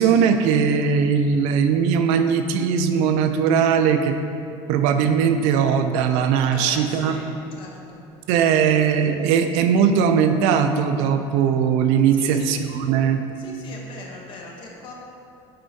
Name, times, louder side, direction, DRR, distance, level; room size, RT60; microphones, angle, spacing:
voice 1, 0.0-4.1 4.7-7.1 8.3-13.2, right 7 dB, 75° right, 7 dB, 0.4 m, -19 dB
voice 2, 6.5-8.1 12.1-12.7 13.3-14.9, left 3 dB, 50° left, -1 dB, 0.9 m, -40 dB
7.6 x 4.6 x 2.7 m, 2.6 s
cardioid pair, 160°, 11 cm